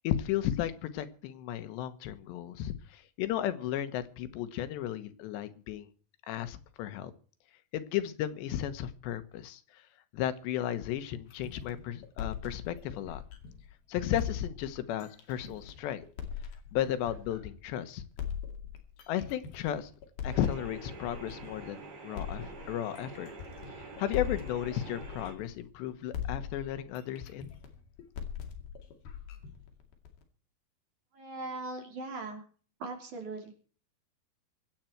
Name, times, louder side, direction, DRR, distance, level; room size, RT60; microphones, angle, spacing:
voice 1, 0.0-5.9 6.3-7.1 7.7-9.8 10.1-13.2 13.9-16.0 16.7-18.0 19.1-19.9 20.2-23.3 24.0-27.5, left 11 dB, 85° left, 12 dB, 3.3 m, -34 dB
sound 1, 11.3-13.7 14.2-17.7 18.2-21.7 22.1-25.8 26.1-30.2, left 8 dB, 65° left, 4.1 m, -41 dB
sound 2, 20.3-25.3, right 3 dB, 65° right, 5.8 m, -47 dB
voice 2, 31.1-32.4 32.8-33.5, right 3 dB, 50° right, 3 dB, 4.4 m, -39 dB
24.5 x 9.1 x 4.5 m, 0.42 s
omnidirectional pair, 4.9 m